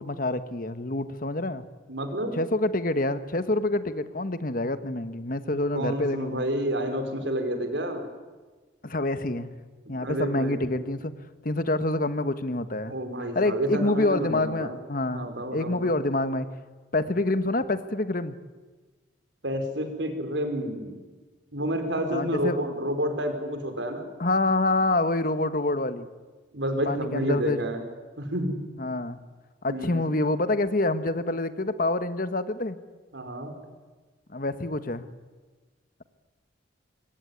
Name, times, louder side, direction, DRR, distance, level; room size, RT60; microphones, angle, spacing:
voice 1, 0.0-1.7 2.3-6.5 8.8-9.5 9.9-11.1 11.4-13.0 13.3-16.5 16.9-18.4 22.1-22.6 24.2-26.1 26.8-27.6 28.8-29.2 29.6-32.8 34.3-35.1, left 2 dB, 50° left, 11 dB, 1.4 m, -27 dB
voice 2, 1.9-2.4 5.7-8.1 9.9-10.7 12.9-14.8 15.1-15.9 19.4-21.0 21.5-24.1 26.5-27.8 28.2-28.6 29.7-30.0 33.1-33.5, right 1 dB, 75° right, 6 dB, 5.0 m, -29 dB
25.5 x 23.5 x 9.7 m, 1.3 s
head